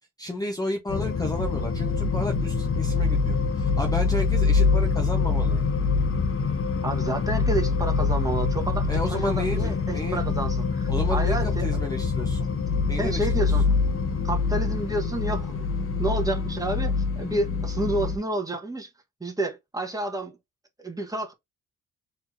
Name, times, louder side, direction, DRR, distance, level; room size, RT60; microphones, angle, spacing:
voice 1, 0.2-5.6 8.9-10.2 10.9-12.5 12.9-13.5, left 1 dB, 10° left, 0.7 m, -32 dB
sound 1, 0.9-18.2, left 4 dB, 40° left, 0.8 m, -25 dB
voice 2, 6.8-11.7 13.0-14.0 14.2-15.7 16.0-18.9 19.2-20.4 20.8-21.3, right 2 dB, 10° right, 1.1 m, -30 dB
4.3 x 3.3 x 2.5 m
cardioid pair, 115°, 33 cm